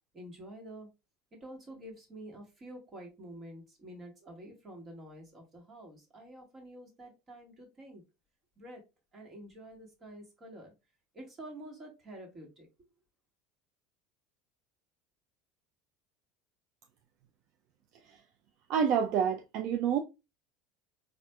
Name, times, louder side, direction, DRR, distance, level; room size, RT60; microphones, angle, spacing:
voice 1, 0.1-0.9 1.4-8.0 8.6-8.8 9.1-10.7 11.1-12.7, right 1 dB, 30° right, 1.4 m, -48 dB
voice 2, 18.7-20.0, right 7 dB, 60° right, 0.4 m, -28 dB
4.1 x 2.5 x 2.2 m
supercardioid pair, 125°, 0 cm